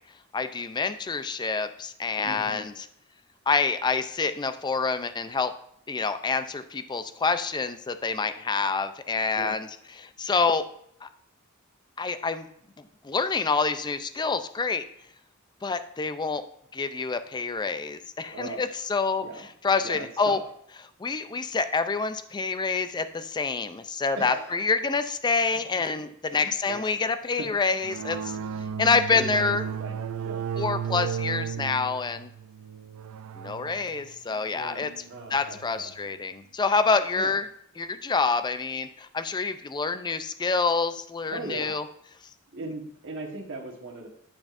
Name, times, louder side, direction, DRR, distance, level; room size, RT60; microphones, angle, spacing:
voice 1, 0.3-2.9 3.5-5.5 5.9-9.7 10.0-10.6 11.0-11.1 12.0-12.5 12.8-14.8 15.6-16.4 16.7-20.4 21.0-28.4 28.8-29.6 30.6-32.3 33.4-34.9 35.3-37.5 37.8-41.9, left 4 dB, 20° left, 11 dB, 0.4 m, -27 dB
voice 2, 2.2-2.7 9.4-9.5 18.3-18.6 19.2-19.4 19.8-20.4 24.2-24.5 26.3-26.8 27.4-27.5 28.4-28.6 29.1-30.0 30.2-30.4 34.5-35.9 37.2-37.3 41.3-41.8 42.5-44.1, right 2 dB, 60° right, -1 dB, 1.3 m, -38 dB
sound 1, 27.8-36.0, right 7 dB, 85° right, 0.4 m, -35 dB
8.6 x 6.1 x 2.5 m, 0.69 s
head